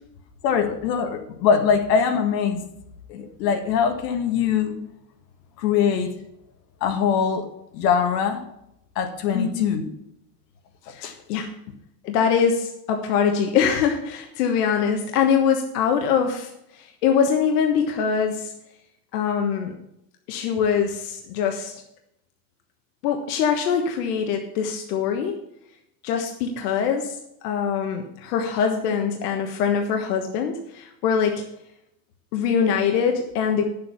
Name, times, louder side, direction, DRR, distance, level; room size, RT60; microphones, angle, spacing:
voice 1, 0.4-2.6 3.1-4.8 5.6-6.1 6.8-7.4 7.7-8.5 9.0-9.9 11.0-11.1, left 7 dB, 85° left, 6 dB, 1.8 m, -22 dB
voice 2, 9.3-9.7 10.9-11.5 12.0-18.5 19.1-19.7 20.3-21.7 23.0-25.4 26.0-27.1 27.4-31.4 32.3-33.6, left 7 dB, 70° left, 4 dB, 1.4 m, -23 dB
9.9 x 7.6 x 5.8 m, 0.80 s
supercardioid pair, 180°, 48 cm